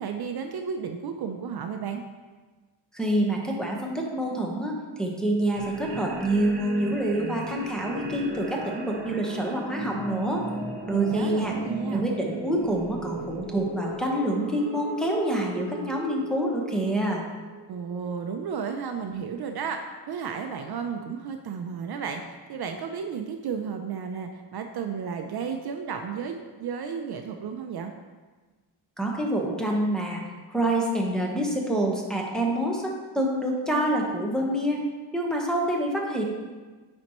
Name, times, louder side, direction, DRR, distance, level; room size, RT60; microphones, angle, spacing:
voice 1, 0.0-2.0 10.9-12.0 17.7-19.8 20.1-22.2 22.5-27.9, right 6 dB, 55° right, 5 dB, 0.6 m, -33 dB
voice 2, 2.9-10.4 10.9-11.5 11.9-17.2 29.0-30.2 30.5-34.8 35.1-36.2, right 1 dB, ahead, -2 dB, 1.1 m, -27 dB
sound 1, 5.5-18.3, right 1 dB, 20° right, 1.5 m, -36 dB
9.5 x 4.3 x 3.0 m, 1.3 s
cardioid pair, 105°, 46 cm